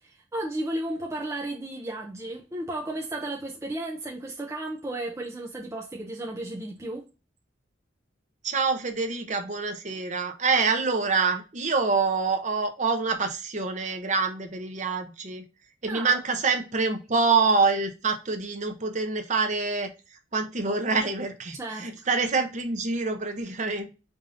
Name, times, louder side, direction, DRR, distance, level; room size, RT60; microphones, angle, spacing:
voice 1, 0.0-7.1 15.9-16.2 21.5-21.9, right 1 dB, 15° right, 0.4 m, -34 dB
voice 2, 8.4-15.4 15.8-19.9 20.3-24.0, right 4 dB, 40° right, 0.7 m, -26 dB
4.8 x 2.7 x 2.5 m
head